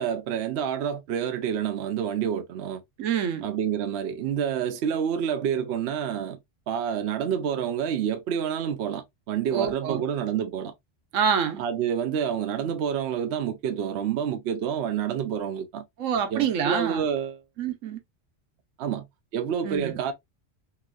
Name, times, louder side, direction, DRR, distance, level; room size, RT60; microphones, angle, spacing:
voice 1, 0.0-2.8 3.4-6.4 6.7-10.7 11.6-15.8 16.3-17.4 18.8-19.0 19.3-20.1, right 8 dB, 65° right, 0.8 m, -28 dB
voice 2, 3.0-3.5 9.5-10.0 11.1-11.6 16.0-17.0 17.6-18.0 19.6-19.9, right 7 dB, 85° right, 1.1 m, -26 dB
2.9 x 2.8 x 2.3 m
omnidirectional pair, 1.3 m